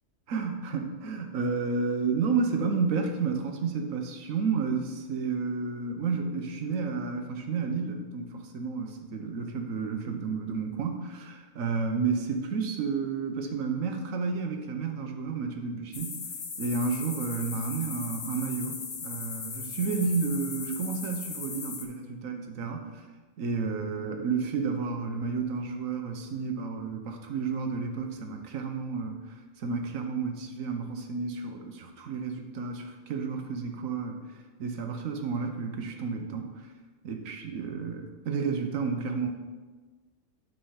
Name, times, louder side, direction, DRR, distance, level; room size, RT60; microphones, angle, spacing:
voice 1, 0.3-16.2 16.6-23.0 23.4-29.1 29.6-34.3 34.6-36.6 37.0-39.3, right 5 dB, 90° right, 4 dB, 1.3 m, -31 dB
sound 1, 15.9-21.8, left 5 dB, 45° left, 0.9 m, -38 dB
8.7 x 4.4 x 5.6 m, 1.3 s
omnidirectional pair, 1.3 m